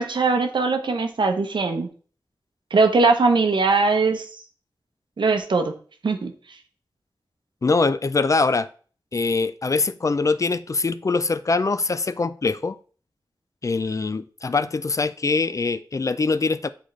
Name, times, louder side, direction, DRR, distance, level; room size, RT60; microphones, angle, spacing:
voice 1, 0.0-1.9 2.7-4.2 5.2-5.7 6.0-6.3, right 4 dB, 85° right, 6 dB, 0.8 m, -20 dB
voice 2, 7.6-8.7 9.1-12.8 13.6-16.7, left 3 dB, 45° left, 14 dB, 0.4 m, -23 dB
8.2 x 3.9 x 3.2 m, 0.42 s
wide cardioid pair, 70°, 8 cm